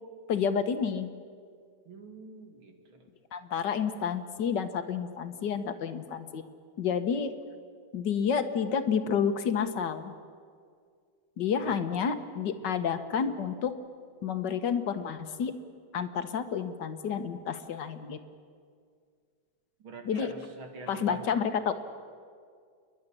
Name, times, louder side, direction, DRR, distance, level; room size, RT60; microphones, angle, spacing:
voice 1, 0.3-1.1 3.3-6.4 6.8-7.3 7.9-10.1 11.4-13.7 14.2-15.5 15.9-18.2 20.1-20.3 20.9-21.7, left 7 dB, 60° left, 9 dB, 1.7 m, -30 dB
voice 2, 1.9-3.1 11.6-11.8 12.6-12.7 19.8-21.3 21.6-21.7, right 3 dB, 85° right, 4 dB, 3.0 m, -45 dB
29.5 x 11.0 x 10.0 m, 2.1 s
omnidirectional pair, 2.2 m